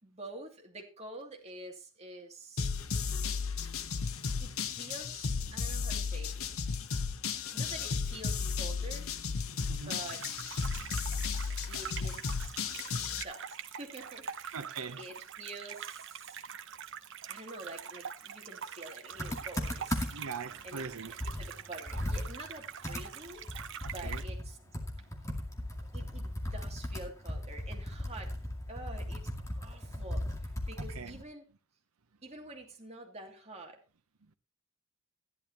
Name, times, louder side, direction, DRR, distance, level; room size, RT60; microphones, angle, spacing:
voice 1, 0.0-2.7 4.4-6.5 7.5-9.1 9.8-10.3 11.7-12.5 13.2-14.6 15.0-16.4 17.3-20.1 20.6-20.9 21.4-23.4 23.8-24.6 25.9-28.4 28.7-31.5 32.2-33.8, right 2 dB, 30° right, 2.7 m, -47 dB
sound 1, 2.6-13.2, left 5 dB, 70° left, 0.9 m, -34 dB
sound 2, 9.9-24.2, right 8 dB, 60° right, 0.9 m, -44 dB
voice 2, 14.5-15.0 20.1-21.3 23.8-24.2 30.8-31.2, right 5 dB, 85° right, 0.8 m, -42 dB
Computer keyboard, 19.2-20.4 20.8-20.9 21.2-24.5 24.7-31.2, left 1 dB, 15° left, 2.3 m, -37 dB
14.5 x 11.5 x 3.0 m
head